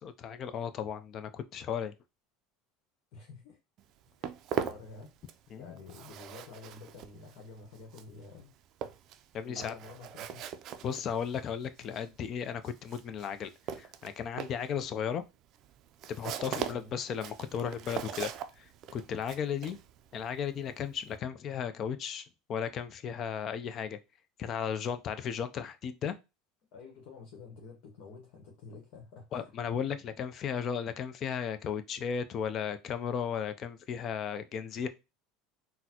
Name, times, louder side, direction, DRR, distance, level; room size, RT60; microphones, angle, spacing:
voice 1, 0.0-1.9 5.5-5.7 9.3-9.7 10.8-13.5 13.8-15.2 16.2-18.3 18.6-18.7 18.9-19.8 20.1-24.0 24.4-26.1 29.3-34.9, left 7 dB, 45° left, 0.5 m, -35 dB
voice 2, 3.1-3.6 4.2-4.3 4.6-5.1 5.6-8.5 9.4-10.4 16.7-16.9 26.7-29.5, left 4 dB, 65° left, 1.0 m, -49 dB
Walk footsteps, 3.8-5.5 5.8-21.2, right 9 dB, 55° right, 0.4 m, -41 dB
3.9 x 2.1 x 2.9 m
supercardioid pair, 105°, 0 cm